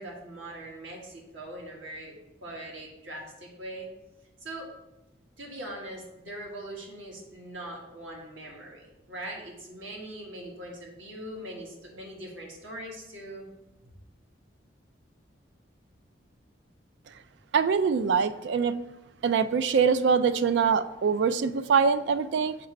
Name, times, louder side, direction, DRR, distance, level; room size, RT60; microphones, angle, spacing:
voice 1, 0.0-2.1 2.4-3.9 4.4-4.7 5.4-13.5, right 1 dB, 90° right, -2 dB, 1.6 m, -41 dB
voice 2, 17.5-18.7 19.2-22.6, right 6 dB, 70° right, 12 dB, 0.3 m, -24 dB
6.7 x 4.9 x 3.2 m, 0.95 s
head